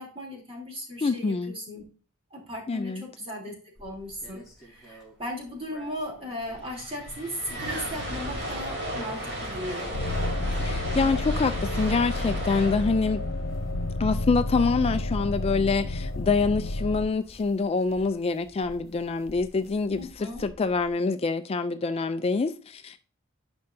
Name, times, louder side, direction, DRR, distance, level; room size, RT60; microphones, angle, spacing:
voice 1, 0.0-1.8 2.3-3.5 3.8-9.9 19.9-20.5, equal, 30° right, 3.1 m, -37 dB
voice 2, 1.0-1.5 2.7-3.0 10.6-13.2 14.0-23.1, left 4 dB, 30° left, 0.3 m, -26 dB
sound 1, 3.7-21.0, equal, ahead, 3.4 m, -50 dB
sound 2, 6.1-6.2 6.4-14.6, equal, 55° right, 2.4 m, -35 dB
sound 3, 9.9-17.1, left 2 dB, 80° left, 0.6 m, -30 dB
10.5 x 5.3 x 2.6 m
head